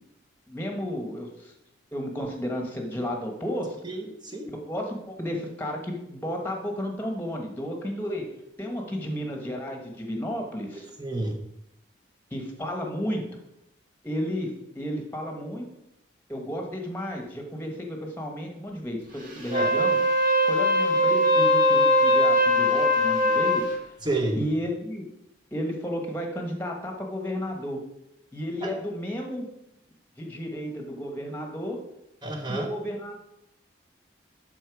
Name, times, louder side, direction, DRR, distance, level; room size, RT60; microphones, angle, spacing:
voice 1, 0.5-1.5 1.9-3.8 4.5-8.3 8.6-10.9 12.3-13.2 14.0-15.7 16.3-20.0 20.5-23.6 24.3-25.1 25.5-27.8 28.3-29.5 30.2-31.8 32.5-33.2, equal, 10° left, 3 dB, 1.2 m, -32 dB
voice 2, 3.8-4.5 11.0-11.4 19.5-19.7 24.0-24.4 28.6-28.7 32.2-32.7, right 2 dB, 25° right, 3 dB, 1.0 m, -30 dB
Wind instrument woodwind instrument, 19.4-23.7, left 1 dB, 45° right, 1.8 m, -21 dB
11.5 x 4.5 x 4.7 m, 0.81 s
head